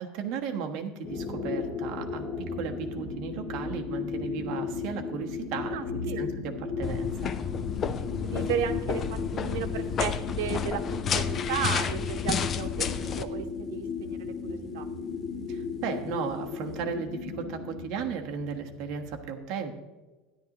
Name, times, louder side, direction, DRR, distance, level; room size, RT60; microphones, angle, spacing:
voice 1, 0.0-7.3 15.5-19.7, right 6 dB, 45° right, 3 dB, 1.2 m, -35 dB
sound 1, 1.0-19.2, left 5 dB, 45° left, 3.4 m, -35 dB
voice 2, 5.7-6.2 8.2-14.9, right 9 dB, 80° right, 6 dB, 1.0 m, -34 dB
sound 2, 6.8-13.2, left 7 dB, 25° left, 0.4 m, -31 dB
13.0 x 10.5 x 3.0 m, 1.2 s
cardioid pair, 170°, 0 cm